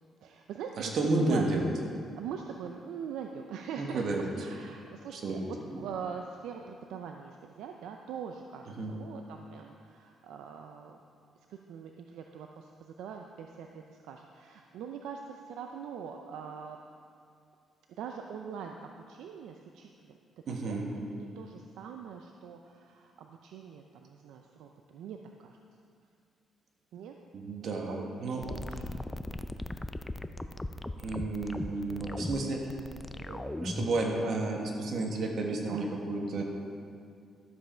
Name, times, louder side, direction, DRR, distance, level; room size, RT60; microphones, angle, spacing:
voice 1, 0.2-1.4 2.2-11.0 11.5-16.8 18.0-20.2 20.5-20.8 21.1-25.6 26.9-27.1 27.6-28.8 31.4-32.8 35.7-35.8, right 7 dB, 85° right, 3 dB, 0.5 m, -43 dB
voice 2, 0.8-1.7 3.8-4.3 5.1-5.5 8.8-8.9 20.5-20.9 27.3-28.4 31.0-32.7 33.2-36.4, right 2 dB, 65° right, 0 dB, 1.6 m, -31 dB
sound 1, 28.4-34.0, left 1 dB, 10° left, 0.4 m, -38 dB
12.5 x 7.5 x 4.5 m, 2.4 s
cardioid pair, 90°, 0 cm